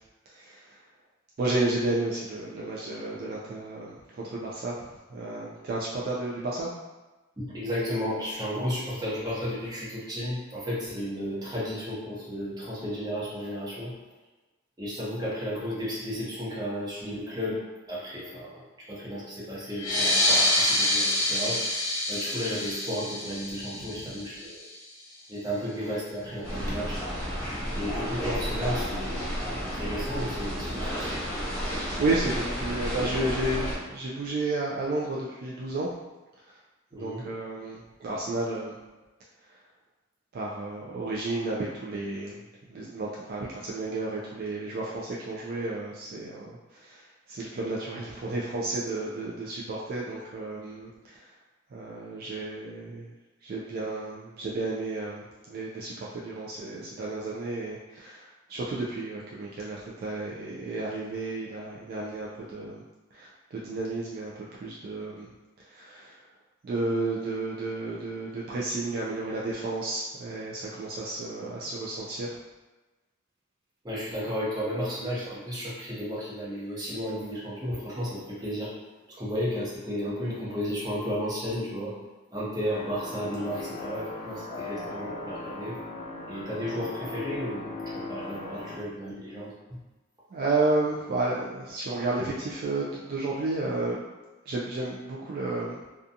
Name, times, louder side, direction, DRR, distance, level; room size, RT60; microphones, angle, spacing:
voice 1, 0.3-0.7 1.4-6.7 23.7-23.8 31.9-35.9 36.9-38.8 40.3-42.4 42.7-51.2 51.7-53.1 53.4-62.8 63.1-65.3 65.6-66.2 66.6-72.4 90.3-94.0 94.5-95.8, right 2 dB, 50° right, -5 dB, 0.3 m, -32 dB
voice 2, 7.4-13.9 14.8-17.6 17.9-21.6 22.1-24.6 25.3-27.0 27.7-29.3 29.7-31.2 36.9-37.2 73.8-78.7 79.2-81.9 82.3-85.8 86.3-89.5, equal, 20° right, -8 dB, 0.8 m, -33 dB
sound 1, 19.7-24.9, left 1 dB, 85° left, 0.7 m, -27 dB
sound 2, 26.4-33.8, equal, 10° left, 1.0 m, -32 dB
sound 3, 82.6-88.7, left 2 dB, 35° left, 0.3 m, -38 dB
2.4 x 2.3 x 2.6 m, 1.1 s
head